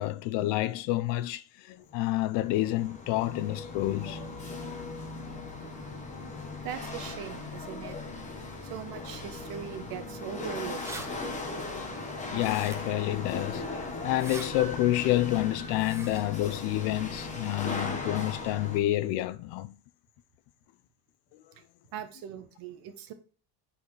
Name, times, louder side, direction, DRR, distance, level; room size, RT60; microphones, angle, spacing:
voice 1, 0.0-4.2 12.3-19.7, left 15 dB, 65° left, 0.6 m, -29 dB
Chatter / Hiss / Rattle, 1.9-18.8, left 3 dB, 15° left, 1.0 m, -38 dB
voice 2, 6.6-8.0 8.7-11.1 21.9-23.1, right 9 dB, 50° right, 1.0 m, -40 dB
sound 1, 10.8-11.1 12.4-13.0 14.1-14.5 15.7-16.2, right 2 dB, 5° right, 0.4 m, -42 dB
8.3 x 4.3 x 3.2 m
cardioid pair, 175°, 45 cm